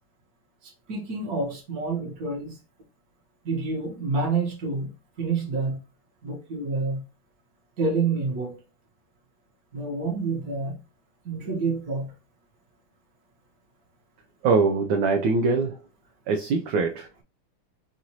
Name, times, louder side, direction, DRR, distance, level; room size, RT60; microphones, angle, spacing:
voice 1, 0.9-2.5 3.4-4.9 5.2-5.8 6.2-7.0 7.8-8.5 9.7-10.8 11.2-12.1, right 4 dB, 50° right, 1.7 m, -28 dB
voice 2, 14.4-15.8 16.3-17.2, right 4 dB, 75° right, 1.3 m, -23 dB
5.9 x 2.5 x 2.9 m
omnidirectional pair, 2.3 m